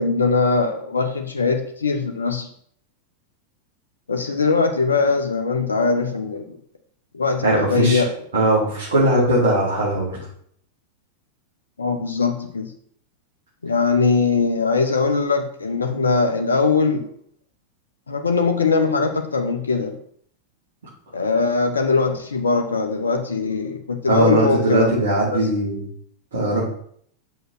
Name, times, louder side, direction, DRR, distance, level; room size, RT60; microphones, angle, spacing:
voice 1, 0.0-2.5 4.1-6.4 7.1-8.1 11.8-12.7 13.6-17.1 18.1-20.0 21.1-24.9 25.3-25.4, left 4 dB, 75° left, 5 dB, 0.8 m, -21 dB
voice 2, 7.4-8.0 8.3-10.1 24.1-25.8 26.3-26.6, right 1 dB, 65° right, -9 dB, 4.1 m, -19 dB
7.1 x 5.4 x 6.0 m, 0.62 s
figure-of-eight pair, 90°, 0 cm